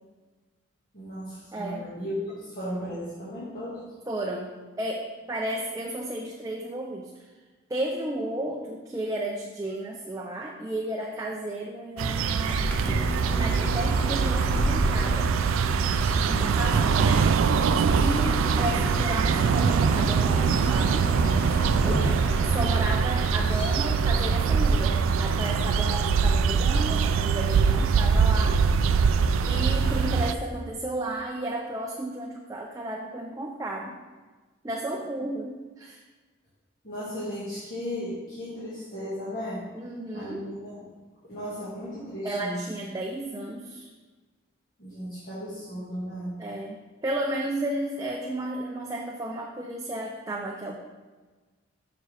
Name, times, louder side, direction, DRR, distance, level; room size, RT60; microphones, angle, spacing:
voice 1, 0.9-3.8 16.2-16.7 18.5-18.8 36.8-39.6 40.1-40.8 41.2-42.6 44.8-46.4, equal, 45° left, -11 dB, 1.8 m, -36 dB
voice 2, 1.5-1.9 4.1-7.2 7.7-12.8 13.3-15.3 16.3-17.3 17.9-21.1 22.4-28.6 29.4-34.0 34.6-36.0 39.7-40.4 42.2-43.9 46.4-50.8, right 1 dB, 15° right, -1 dB, 0.4 m, -33 dB
sound 1, 12.0-30.3, right 6 dB, 80° right, 0.3 m, -23 dB
sound 2, 12.5-29.7, equal, 5° left, 1.2 m, -33 dB
7.0 x 5.9 x 3.4 m, 1.3 s
head